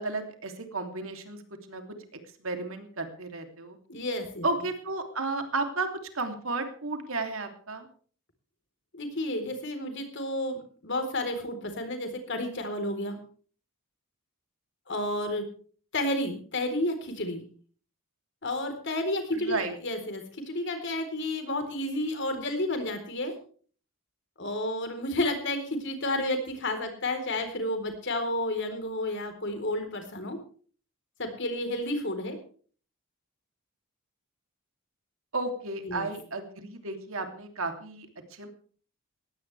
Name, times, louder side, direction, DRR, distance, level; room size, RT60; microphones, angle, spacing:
voice 1, 0.0-1.4 1.7-1.8 2.1-3.8 4.4-5.9 6.1-7.9 19.3-19.7 35.3-38.5, right 3 dB, 65° right, 5 dB, 3.0 m, -33 dB
voice 2, 3.9-4.5 8.9-13.2 14.9-15.5 15.9-17.4 18.4-23.3 24.4-30.4 31.2-32.4 35.8-36.1, left 1 dB, 55° left, 7 dB, 4.1 m, -31 dB
19.5 x 16.5 x 3.4 m, 0.44 s
head